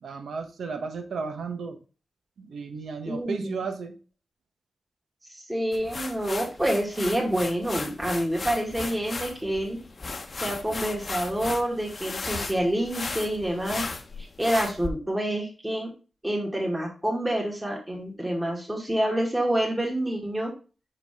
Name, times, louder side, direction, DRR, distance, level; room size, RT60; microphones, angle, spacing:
voice 1, 0.0-1.8 2.4-3.9, right 5 dB, 85° right, 7 dB, 1.0 m, -34 dB
voice 2, 3.1-3.6 5.3-9.8 10.4-13.9 14.2-15.9 16.2-20.5, right 1 dB, 15° right, -1 dB, 2.0 m, -27 dB
sound 1, 5.7-14.9, left 3 dB, 45° left, 0.8 m, -36 dB
5.6 x 4.9 x 3.4 m, 0.34 s
wide cardioid pair, 90°, 0 cm